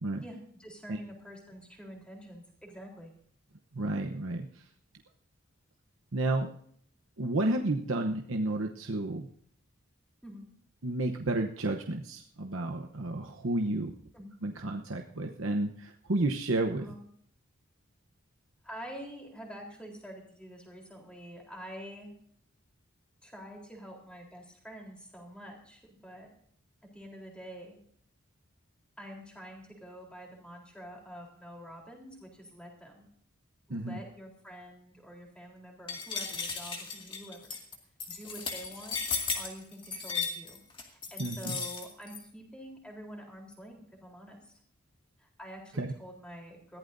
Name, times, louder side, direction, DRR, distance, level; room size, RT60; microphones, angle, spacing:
voice 1, 0.2-3.1 7.5-7.7 10.2-10.5 14.1-14.4 16.8-17.0 18.6-22.1 23.2-26.3 26.9-27.8 29.0-33.1 33.7-37.5 38.1-39.0 39.3-44.6 45.2-46.8, equal, 5° left, 0 dB, 3.8 m, -47 dB
voice 2, 3.7-4.6 6.1-6.5 7.2-9.3 10.8-13.9 14.4-16.9 33.7-34.0 41.2-41.6 45.7-45.9, right 2 dB, 70° right, 3 dB, 1.0 m, -31 dB
sound 1, 35.9-42.2, left 5 dB, 25° left, 2.2 m, -35 dB
21.5 x 15.0 x 2.7 m, 0.64 s
head